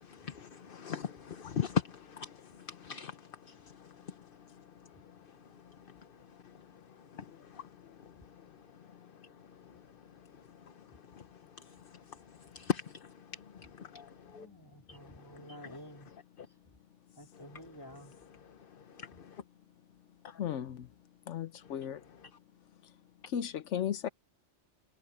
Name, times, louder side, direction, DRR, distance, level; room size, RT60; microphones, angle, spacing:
voice 1, 0.0-4.2 7.1-7.7 11.1-11.2 11.6-11.7 11.9-12.0 12.4-13.1 13.5-14.5 14.9-15.0 15.3-15.8 19.0-19.4 20.2-20.4, left 7 dB, 50° left, 1.1 m, -39 dB
voice 2, 14.2-16.1 17.2-18.1, equal, 20° left, 3.9 m, -51 dB
voice 3, 20.4-20.9 21.3-22.0 23.3-24.1, left 9 dB, 85° left, 1.1 m, -35 dB
omnidirectional pair, 1.2 m